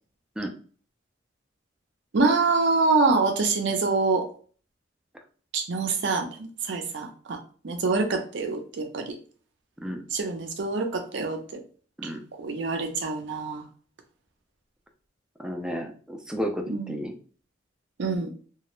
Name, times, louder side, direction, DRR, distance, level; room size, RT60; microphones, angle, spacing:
voice 1, 2.1-4.3 5.5-9.2 10.1-11.6 12.0-12.1 12.4-13.6 16.7-17.0 18.0-18.3, right 3 dB, 65° right, 5 dB, 0.5 m, -26 dB
voice 2, 15.4-17.1, equal, 5° right, 3 dB, 0.3 m, -32 dB
2.3 x 2.0 x 3.0 m, 0.42 s
head